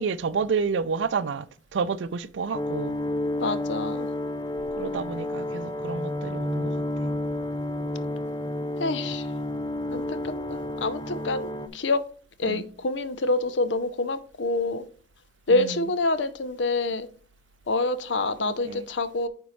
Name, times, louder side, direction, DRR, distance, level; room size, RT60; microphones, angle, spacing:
voice 1, 0.0-3.0 4.8-7.1 12.4-12.6 15.5-15.9 18.4-18.9, right 5 dB, 80° right, 0.5 m, -30 dB
sound 1, 2.5-11.7, left 1 dB, 20° left, 0.5 m, -30 dB
voice 2, 3.4-4.1 8.8-9.3 9.9-12.0 12.4-14.8 15.5-17.1 17.7-19.3, left 2 dB, 75° left, 0.7 m, -27 dB
9.1 x 4.3 x 3.1 m
head